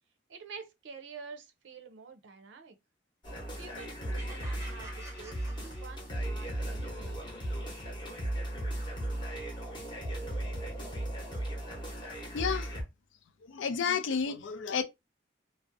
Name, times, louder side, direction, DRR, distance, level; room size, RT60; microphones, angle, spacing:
voice 1, 0.3-2.8 3.6-5.3 5.6-7.2, right 5 dB, 75° right, 0.5 m, -48 dB
sound 1, 3.2-12.8, right 1 dB, 25° left, 0.7 m, -36 dB
sound 2, 4.1-6.5, right 1 dB, 15° right, 0.6 m, -50 dB
voice 2, 12.3-12.8 13.4-14.8, left 6 dB, 85° left, 0.4 m, -31 dB
2.5 x 2.0 x 2.5 m
head